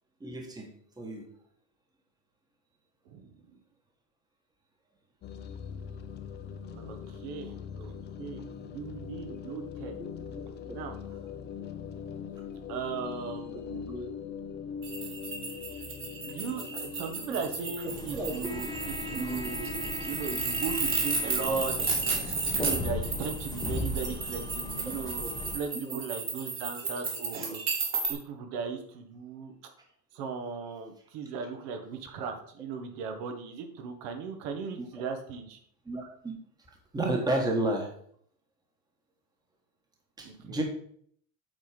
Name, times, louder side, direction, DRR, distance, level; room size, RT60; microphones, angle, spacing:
voice 1, 0.2-0.7 1.0-1.2 8.6-8.7 10.3-10.8 13.9-14.1 17.3-17.4 17.8-18.3 19.1-19.5 25.2-25.3 25.8-26.0 28.0-28.1 32.2-32.3 34.8-34.9 35.8-36.3 36.9-37.9 40.2-40.6, right 2 dB, 10° right, 1 dB, 1.3 m, -32 dB
voice 2, 3.1-3.6 6.7-10.0 10.7-11.0 12.7-13.9 16.2-22.0 22.5-25.2 25.5-27.6 28.1-29.5 30.1-35.6 40.2-40.6, right 5 dB, 65° right, 5 dB, 1.5 m, -37 dB
sound 1, 5.2-23.3, left 7 dB, 25° left, 0.5 m, -42 dB
sound 2, 14.8-28.1, right 4 dB, 30° right, 1.9 m, -33 dB
sound 3, 17.9-25.6, left 2 dB, 10° left, 1.0 m, -37 dB
8.0 x 4.2 x 5.0 m, 0.62 s
cardioid pair, 150°, 39 cm